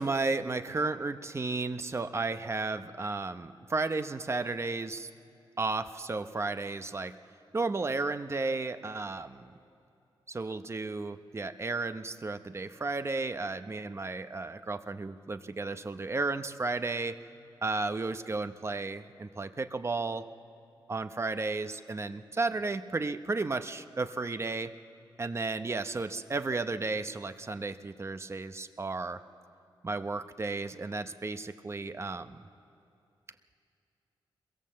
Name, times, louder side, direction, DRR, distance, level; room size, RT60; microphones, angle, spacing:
voice 1, 0.0-5.1 5.6-7.2 7.5-9.5 10.3-17.2 17.6-20.3 20.9-24.7 25.2-29.2 29.8-32.4, right 3 dB, 30° right, 10 dB, 0.8 m, -33 dB
23.5 x 22.5 x 7.6 m, 2.6 s
wide cardioid pair, 95°, 9 cm